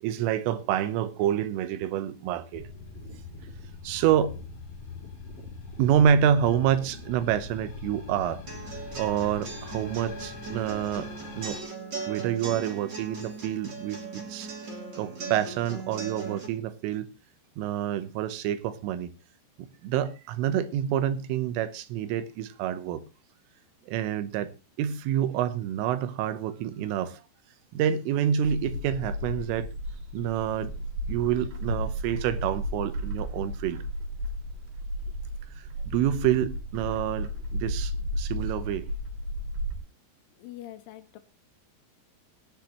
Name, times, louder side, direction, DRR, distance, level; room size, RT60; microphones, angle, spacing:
voice 1, 0.0-2.7 3.8-4.4 5.8-8.4 8.7-11.1 11.4-11.6 12.1-14.5 15.0-17.1 17.6-19.1 19.6-23.0 23.9-24.5 24.8-27.2 27.7-29.7 30.1-30.7 31.1-33.8 35.6-38.9, right 9 dB, 85° right, 3.5 m, -27 dB
sound 1, 2.5-11.6, left 4 dB, 35° left, 3.2 m, -42 dB
sound 2, 8.5-16.5, right 4 dB, 35° right, 2.0 m, -38 dB
Bird, 28.4-39.8, equal, 65° right, 3.5 m, -33 dB
voice 2, 40.4-41.2, left 14 dB, 80° left, 3.1 m, -44 dB
20.0 x 10.5 x 3.0 m
omnidirectional pair, 5.6 m